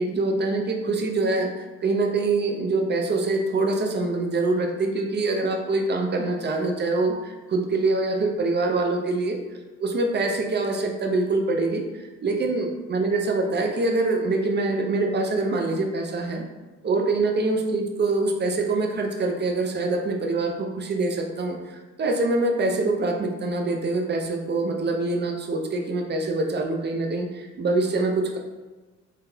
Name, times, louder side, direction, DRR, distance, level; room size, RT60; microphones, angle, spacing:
voice 1, 0.0-9.4 9.8-16.4 16.8-28.4, right 2 dB, 35° right, 3 dB, 0.6 m, -25 dB
3.9 x 3.3 x 2.7 m, 1.3 s
cardioid pair, 90°, 30 cm